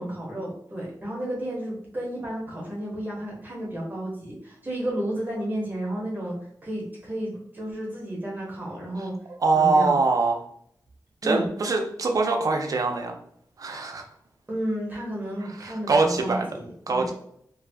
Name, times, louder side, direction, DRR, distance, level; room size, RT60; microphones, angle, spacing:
voice 1, 0.0-6.4 6.6-9.1 9.5-9.9 11.2-11.5 13.8-13.9 14.5-17.1, right 1 dB, 25° right, -4 dB, 0.9 m, -32 dB
voice 2, 9.4-10.4 11.2-13.2 13.6-14.1 15.6-16.5 16.9-17.1, right 3 dB, 55° right, 3 dB, 0.5 m, -23 dB
2.5 x 2.3 x 3.4 m, 0.69 s
wide cardioid pair, 90°, 7 cm